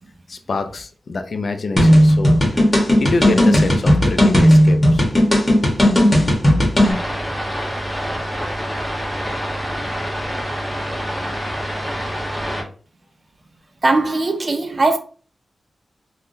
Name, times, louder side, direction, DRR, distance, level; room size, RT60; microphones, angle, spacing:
voice 1, 0.3-2.6 3.0-5.0, left 3 dB, 55° left, 0.4 m, -26 dB
sound 1, 1.8-6.9, equal, 25° left, 1.2 m, -14 dB
sound 2, 6.8-12.6, equal, 5° right, 1.1 m, -26 dB
voice 2, 13.8-15.0, right 2 dB, 35° right, 0.3 m, -19 dB
3.5 x 2.2 x 2.6 m
wide cardioid pair, 105°, 0 cm